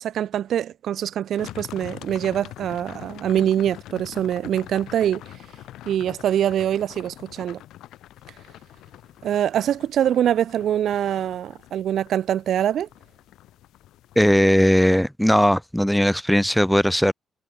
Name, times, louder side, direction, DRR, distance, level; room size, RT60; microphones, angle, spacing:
voice 1, 0.0-5.4 5.9-7.6 9.2-12.9, right 10 dB, 70° right, 1.0 m, -24 dB
sound 1, 1.4-14.4, left 14 dB, 85° left, 4.7 m, -44 dB
voice 2, 14.2-17.1, equal, ahead, 3.7 m, -18 dB
cardioid pair, 90°, 0 cm